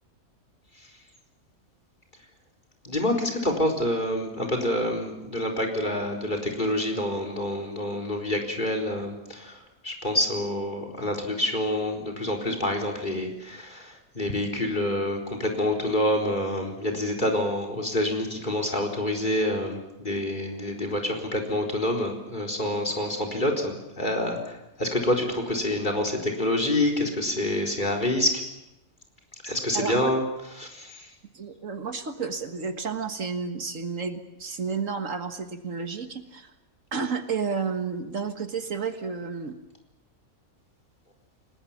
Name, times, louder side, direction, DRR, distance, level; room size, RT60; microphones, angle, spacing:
voice 1, 2.8-9.6 9.8-28.4 29.4-30.2 30.6-31.1, left 1 dB, 35° left, 4 dB, 4.4 m, -27 dB
voice 2, 29.7-30.1 31.3-36.5 36.9-39.6, right 5 dB, 65° right, 7 dB, 1.9 m, -31 dB
29.5 x 19.5 x 7.3 m, 0.90 s
omnidirectional pair, 1.5 m